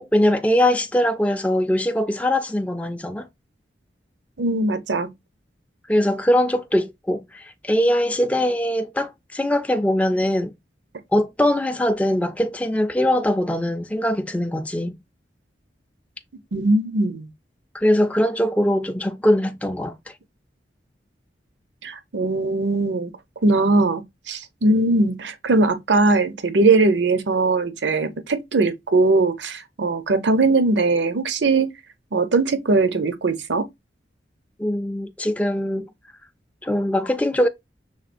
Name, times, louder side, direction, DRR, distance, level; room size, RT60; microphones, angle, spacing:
voice 1, 0.0-3.3 5.9-10.5 11.1-15.0 17.7-20.1 34.6-35.9 36.6-37.5, left 1 dB, 5° left, 0.3 m, -21 dB
voice 2, 4.4-5.1 16.5-17.3 21.8-23.1 23.4-31.7 32.1-33.7, right 3 dB, 80° right, 0.7 m, -20 dB
5.7 x 3.5 x 2.5 m
head